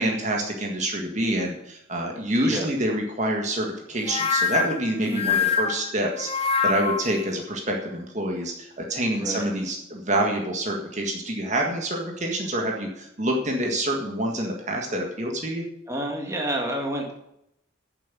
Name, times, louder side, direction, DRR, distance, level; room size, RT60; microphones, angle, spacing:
voice 1, 0.0-15.6, right 1 dB, 35° right, 1 dB, 1.8 m, -27 dB
sound 1, 4.1-7.2, left 6 dB, 30° left, 1.1 m, -25 dB
voice 2, 5.1-5.4 9.1-9.4 15.9-17.1, right 1 dB, 15° right, 0 dB, 2.0 m, -29 dB
10.0 x 7.3 x 8.3 m, 0.78 s
head